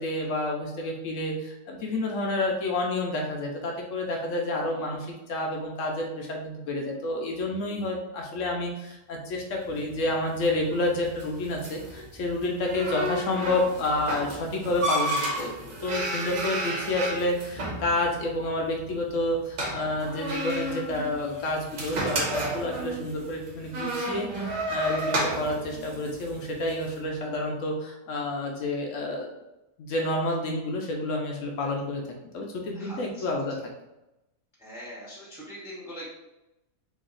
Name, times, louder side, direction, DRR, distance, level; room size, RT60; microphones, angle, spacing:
voice 1, 0.0-29.3 29.8-32.0 32.3-33.6, left 1 dB, 65° left, 1 dB, 0.9 m, -29 dB
sound 1, 9.6-26.9, right 1 dB, 55° right, 1.1 m, -32 dB
voice 2, 16.6-16.9 22.9-23.0 32.7-33.3 34.6-36.2, equal, ahead, -6 dB, 0.7 m, -43 dB
3.0 x 2.7 x 3.8 m, 0.94 s
omnidirectional pair, 1.6 m